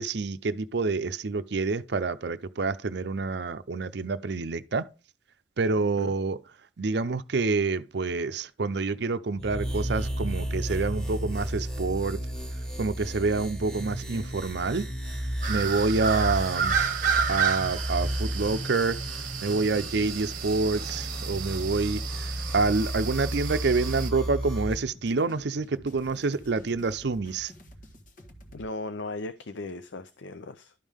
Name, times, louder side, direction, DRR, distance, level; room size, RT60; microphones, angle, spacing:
voice 1, 0.0-4.9 5.6-6.4 6.8-12.2 12.8-14.9 15.5-16.8 17.3-19.0 19.4-27.5, right 3 dB, 65° right, 0.6 m, -27 dB
sound 1, 9.4-24.8, equal, 5° left, 1.7 m, -33 dB
sound 2, 15.4-24.1, right 7 dB, 45° right, 1.0 m, -31 dB
sound 3, 24.0-28.7, equal, 45° left, 1.4 m, -50 dB
voice 2, 28.5-30.7, left 2 dB, 80° left, 0.6 m, -37 dB
12.0 x 5.5 x 3.5 m
head